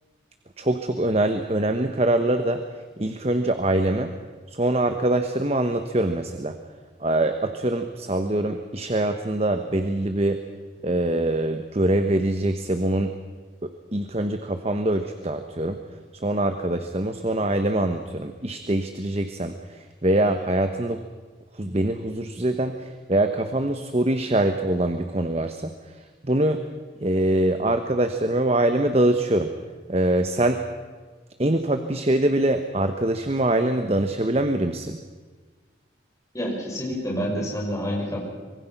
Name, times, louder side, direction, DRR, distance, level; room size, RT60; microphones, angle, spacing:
voice 1, 0.6-2.6 3.0-4.1 4.5-6.6 7.0-10.4 10.8-13.1 13.6-15.8 16.2-21.0 21.5-26.0 26.2-26.6 27.0-29.5 29.9-30.6 31.4-35.0, right 1 dB, 35° right, 7 dB, 1.0 m, -24 dB
voice 2, 36.3-38.2, equal, 20° left, -3 dB, 6.0 m, -28 dB
25.0 x 23.0 x 5.9 m, 1.4 s
head